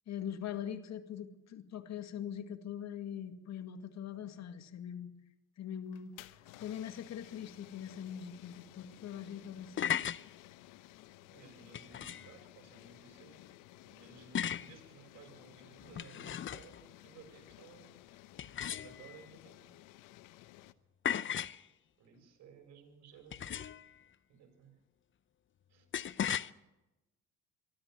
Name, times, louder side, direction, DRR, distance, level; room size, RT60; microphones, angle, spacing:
voice 1, 0.1-5.1 5.6-6.1 6.6-9.9, left 9 dB, 55° left, 8 dB, 2.1 m, -42 dB
sound 1, 5.8-20.7, left 16 dB, 70° left, 1.0 m, -56 dB
voice 2, 9.3-9.7 11.3-13.4 13.9-17.9 18.6-19.7 22.0-23.8 24.3-24.7 25.7-25.9, right 6 dB, 55° right, 4 dB, 6.7 m, -58 dB
sound 2, 9.5-10.2 11.7-12.4 14.4-14.7 15.8-16.8 18.4-19.2 21.1-21.6 23.3-23.9 25.9-26.5, left 9 dB, 35° left, 0.8 m, -36 dB
24.5 x 12.5 x 9.2 m, 1.0 s
hypercardioid pair, 65°, 33 cm